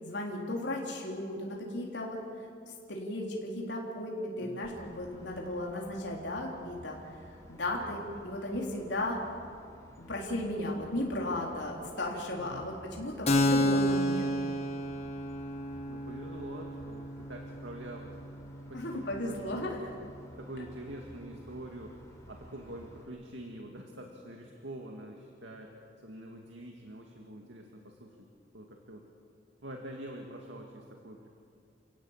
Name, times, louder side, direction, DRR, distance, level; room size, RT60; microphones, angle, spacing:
voice 1, 0.0-2.2 2.9-7.0 7.5-9.2 10.0-14.3 18.7-19.9, left 1 dB, 70° left, -2 dB, 3.7 m, -35 dB
voice 2, 4.4-4.7 7.7-8.0 12.4-12.7 13.5-13.9 15.9-18.2 18.7-19.6 20.0-20.1 20.4-28.3 28.5-29.0 29.6-31.3, right 1 dB, 85° right, 1 dB, 2.2 m, -45 dB
sound 1, 4.6-23.0, equal, 15° left, 4.6 m, -54 dB
Keyboard (musical), 13.3-20.6, left 1 dB, 35° left, 1.5 m, -32 dB
30.0 x 17.5 x 7.4 m, 2.4 s
head